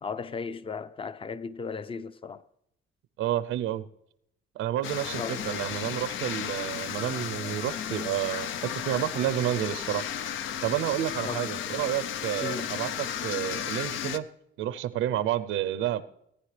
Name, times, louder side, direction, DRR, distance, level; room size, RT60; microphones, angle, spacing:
voice 1, 0.0-2.4 5.2-5.5 11.2-11.5 12.4-12.7, left 5 dB, 25° left, 0.6 m, -36 dB
voice 2, 3.2-3.9 4.6-10.1 10.6-14.3 14.6-16.0, right 12 dB, 90° right, 0.6 m, -30 dB
sound 1, 4.8-14.2, left 9 dB, 80° left, 0.6 m, -34 dB
18.0 x 9.8 x 3.3 m
cardioid pair, 90°, 20 cm